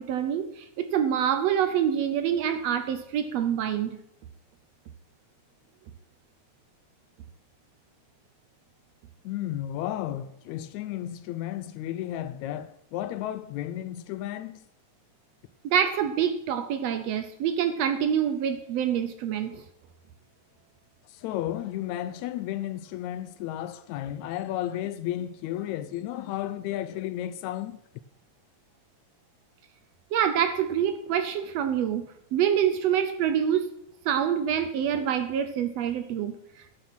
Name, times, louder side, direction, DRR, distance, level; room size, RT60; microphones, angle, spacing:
voice 1, 0.0-4.0 15.6-19.6 30.1-33.7 34.0-36.7, right 9 dB, 70° right, 1.7 m, -26 dB
voice 2, 9.3-14.6 21.1-27.8, left 12 dB, 80° left, 1.8 m, -33 dB
11.5 x 7.1 x 6.0 m
omnidirectional pair, 3.4 m